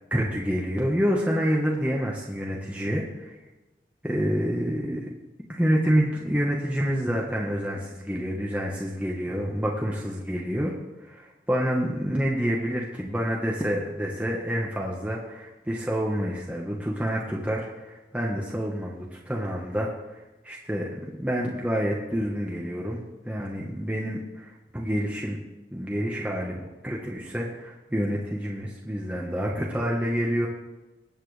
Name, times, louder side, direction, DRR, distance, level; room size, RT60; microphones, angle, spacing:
voice 1, 0.1-3.0 4.0-5.1 5.5-20.9 21.2-25.4 25.7-30.5, equal, 10° right, -3 dB, 1.3 m, -28 dB
20.5 x 8.8 x 3.4 m, 1.1 s
head